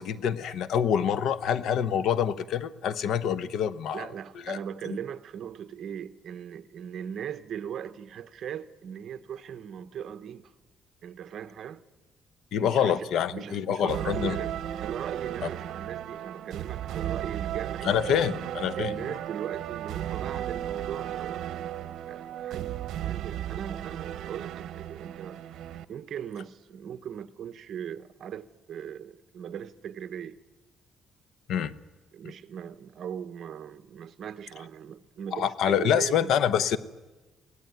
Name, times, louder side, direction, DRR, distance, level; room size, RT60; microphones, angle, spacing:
voice 1, 0.0-4.1 4.5-4.6 12.5-14.4 17.8-18.9 31.5-31.7 35.3-36.8, left 8 dB, 75° left, 0.9 m, -26 dB
voice 2, 3.9-10.5 11.0-11.8 12.6-18.0 18.7-21.5 22.1-25.4 25.9-30.4 32.1-36.3, right 8 dB, 55° right, 1.0 m, -39 dB
sound 1, 13.9-25.8, right 11 dB, 80° right, 0.9 m, -35 dB
23.0 x 17.0 x 9.5 m
cardioid pair, 145°, 0 cm